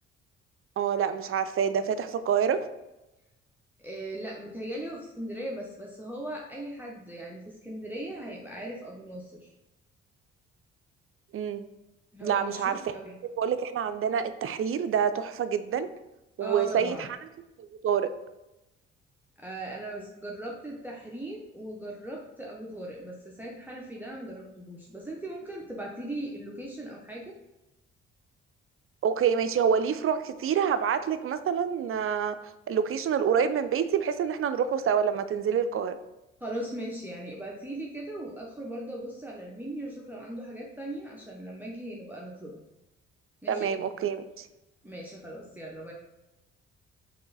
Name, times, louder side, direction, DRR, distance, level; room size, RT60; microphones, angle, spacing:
voice 1, 0.8-2.6 11.3-11.7 12.2-12.8 13.4-15.9 16.4-17.1 17.6-18.1 29.0-32.4 32.7-35.9 43.5-44.5, right 7 dB, 45° right, 11 dB, 0.4 m, -27 dB
voice 2, 3.8-9.5 12.1-13.2 16.4-17.1 19.4-27.3 36.4-42.6 43.4-43.7 44.8-45.9, right 1 dB, 5° right, -3 dB, 0.8 m, -39 dB
3.7 x 3.4 x 4.0 m, 0.96 s
supercardioid pair, 55°, 30 cm